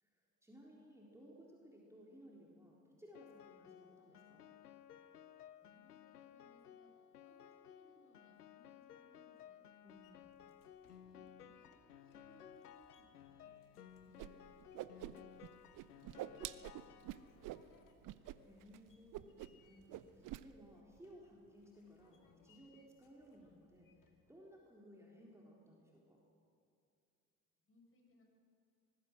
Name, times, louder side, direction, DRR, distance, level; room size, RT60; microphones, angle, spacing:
voice 1, 0.0-4.5 9.8-10.3 18.1-26.2, equal, 5° right, -4 dB, 3.9 m, -60 dB
Piano, 3.1-17.5, left 9 dB, 85° left, 0.7 m, -58 dB
voice 2, 5.6-6.9 7.2-9.6 10.8-14.2 14.9-17.8 27.6-28.2, left 1 dB, 30° left, 0 dB, 7.2 m, -70 dB
sound 1, 9.9-24.3, left 5 dB, 45° left, 2.6 m, -72 dB
Whoosh swoosh swish, 14.2-14.3 14.6-15.5 15.7-17.6 18.0-18.4 18.6-18.8 19.1-19.6 19.9-20.4, right 15 dB, 45° right, 0.8 m, -46 dB
24.0 x 20.0 x 6.3 m, 2.5 s
figure-of-eight pair, 55°, 46 cm